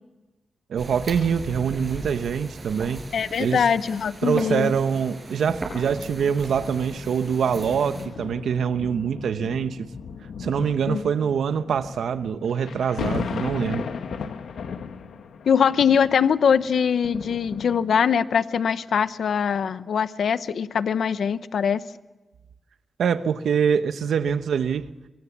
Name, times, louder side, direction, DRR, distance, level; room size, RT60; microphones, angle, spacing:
voice 1, 0.7-3.0 3.4-3.7 4.2-9.9 10.4-13.9 23.0-24.9, right 7 dB, 90° right, 1.1 m, -24 dB
sound 1, 0.8-8.1, right 2 dB, 25° right, 5.3 m, -38 dB
voice 2, 3.1-4.7 10.9-11.0 15.5-21.8, left 7 dB, 65° left, 0.7 m, -22 dB
sound 2, 5.4-18.2 18.9-19.0, left 6 dB, 80° left, 1.4 m, -36 dB
25.5 x 23.5 x 7.3 m
wide cardioid pair, 175°, 0 cm